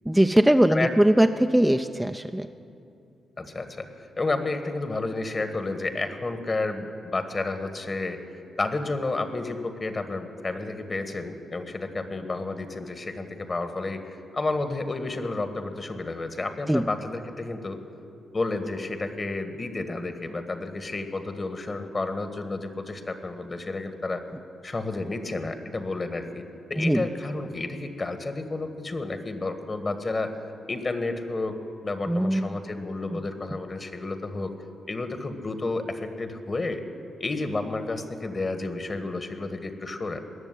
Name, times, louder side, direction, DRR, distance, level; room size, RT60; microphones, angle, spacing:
voice 1, 0.1-2.5 16.7-16.9 26.8-27.0 32.1-32.5 33.1-33.2 33.5-33.6, right 1 dB, 5° right, 7 dB, 0.5 m, -21 dB
voice 2, 3.4-3.9 4.2-6.9 7.1-8.2 8.6-14.1 14.3-17.8 18.3-24.2 24.6-26.4 26.7-30.3 30.7-34.5 34.9-36.8 37.2-40.2, left 3 dB, 40° left, 8 dB, 1.6 m, -31 dB
19.5 x 7.1 x 9.9 m, 2.6 s
supercardioid pair, 50°, 0 cm